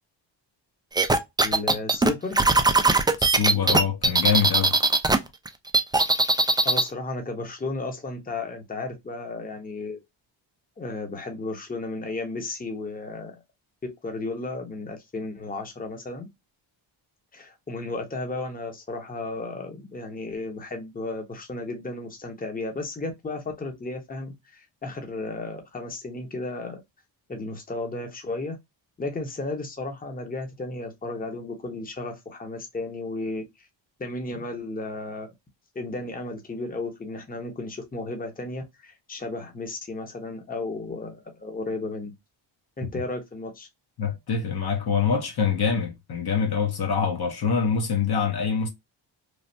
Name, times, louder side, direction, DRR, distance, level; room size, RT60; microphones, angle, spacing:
sound 1, 1.0-5.2 5.5-6.9, right 3 dB, 10° right, 0.3 m, -20 dB
voice 1, 1.4-2.5 6.6-10.0 10.8-13.4 14.0-16.3 17.3-26.8 27.3-28.6 29.0-33.7 34.0-35.3 35.7-42.1 42.8-43.7, left 2 dB, 20° left, 0.8 m, -34 dB
voice 2, 3.2-4.7 44.0-48.7, left 6 dB, 55° left, 0.9 m, -25 dB
3.2 x 2.0 x 2.6 m
cardioid pair, 80°, 46 cm